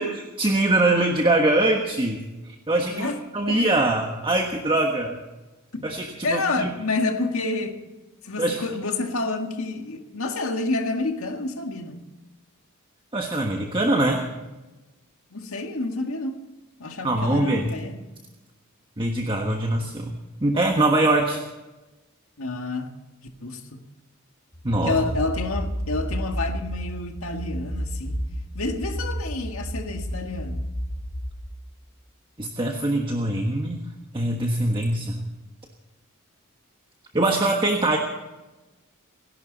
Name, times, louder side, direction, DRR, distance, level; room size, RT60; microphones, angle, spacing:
voice 1, 0.0-5.2 5.8-6.7 8.4-8.6 13.1-14.3 17.0-17.7 19.0-20.1 20.4-21.4 24.6-25.0 32.4-33.9 34.1-35.2 37.1-38.0, right 2 dB, 25° right, 2 dB, 1.4 m, -23 dB
voice 2, 2.9-3.2 3.5-3.7 5.7-5.8 6.2-7.8 8.2-12.1 15.3-16.4 16.8-18.0 22.4-22.9 23.4-23.8 24.8-28.2 28.5-30.6, left 3 dB, 70° left, 4 dB, 2.0 m, -29 dB
sound 1, 24.5-31.4, equal, 25° left, 4.4 m, -31 dB
29.5 x 11.5 x 4.1 m, 1.1 s
head